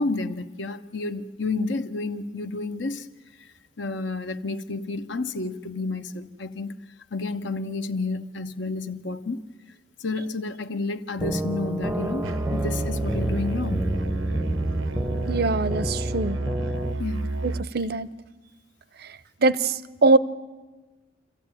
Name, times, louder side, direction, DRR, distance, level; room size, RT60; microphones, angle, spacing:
voice 1, 0.0-3.1 3.4-3.5 3.8-6.7 7.1-9.4 10.0-13.9 17.0-17.3, left 3 dB, 70° left, 0.9 m, -30 dB
sound 1, 11.2-16.9, right 1 dB, 10° right, 0.6 m, -30 dB
Musical instrument, 12.2-17.7, right 2 dB, 85° right, 0.9 m, -29 dB
voice 2, 15.3-16.4 17.4-18.1 19.4-20.2, right 3 dB, 50° right, 0.7 m, -22 dB
26.0 x 15.0 x 9.0 m
head